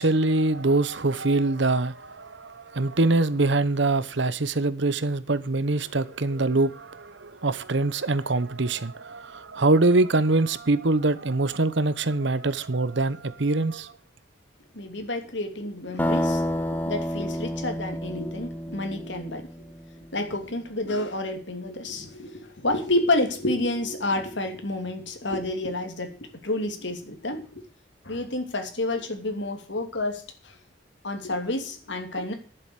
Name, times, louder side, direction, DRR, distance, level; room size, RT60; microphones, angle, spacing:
voice 1, 0.0-13.9, right 2 dB, 65° right, 0.9 m, -24 dB
voice 2, 14.7-16.4 16.8-19.5 20.1-26.2 26.4-27.6 28.0-30.2 31.0-32.3, left 2 dB, 70° left, 2.8 m, -29 dB
sound 1, 16.0-19.8, equal, 10° left, 1.2 m, -29 dB
11.0 x 7.8 x 8.1 m
head